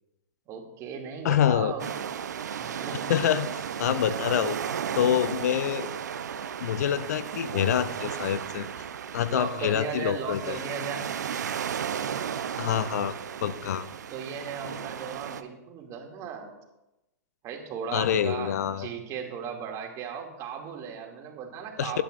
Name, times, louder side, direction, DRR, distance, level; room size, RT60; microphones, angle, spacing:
voice 1, 0.5-1.9 2.6-3.2 4.0-4.1 9.3-11.1 14.1-16.5 17.4-22.0, right 6 dB, 35° right, 1 dB, 2.6 m, -37 dB
voice 2, 1.2-1.7 3.1-3.5 3.8-4.6 4.9-5.9 6.4-8.9 9.1-10.6 12.6-13.1 13.4-13.9 17.9-18.9 21.8-22.0, left 10 dB, 65° left, 14 dB, 0.6 m, -26 dB
sound 1, 1.8-15.4, right 8 dB, 75° right, 0.8 m, -34 dB
18.5 x 11.5 x 2.6 m, 0.94 s
hypercardioid pair, 115°, 9 cm